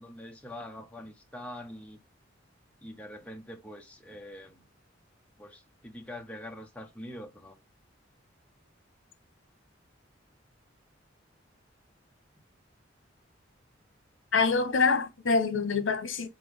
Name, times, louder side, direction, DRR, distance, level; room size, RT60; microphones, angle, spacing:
voice 1, 0.0-2.0 2.8-4.6 5.4-7.6, left 1 dB, 5° left, 0.8 m, -44 dB
voice 2, 14.3-16.3, left 4 dB, 75° left, 1.0 m, -25 dB
3.7 x 3.4 x 3.5 m
head